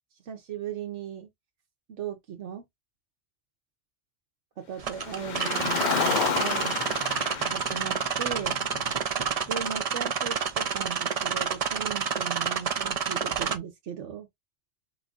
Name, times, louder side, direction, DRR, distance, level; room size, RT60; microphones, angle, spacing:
voice 1, 0.2-1.3 1.9-2.6 4.6-6.8 7.5-8.6 9.5-14.3, right 8 dB, 90° right, 1.2 m, -37 dB
sound 1, 4.8-13.6, right 7 dB, 50° right, 0.4 m, -29 dB
Car, 4.9-9.3, left 7 dB, 55° left, 0.5 m, -31 dB
4.2 x 2.4 x 3.7 m
omnidirectional pair, 1.2 m